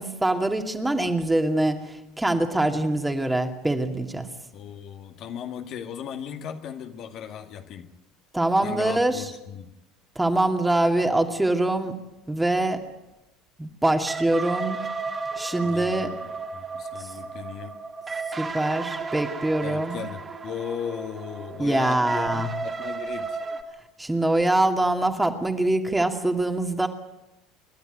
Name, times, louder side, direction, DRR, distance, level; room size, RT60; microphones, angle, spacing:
voice 1, 0.0-4.3 8.3-9.2 10.2-11.9 12.3-12.8 13.6-14.8 15.4-16.1 18.4-20.0 21.6-22.5 24.0-26.9, right 1 dB, 10° right, 5 dB, 2.5 m, -24 dB
voice 2, 4.5-7.9 8.6-9.7 15.6-16.3 16.5-17.8 19.6-23.4, left 8 dB, 50° left, 5 dB, 2.1 m, -37 dB
sound 1, 14.1-23.6, right 4 dB, 25° right, 2.6 m, -34 dB
28.5 x 12.0 x 9.3 m, 0.94 s
hypercardioid pair, 70°, 0 cm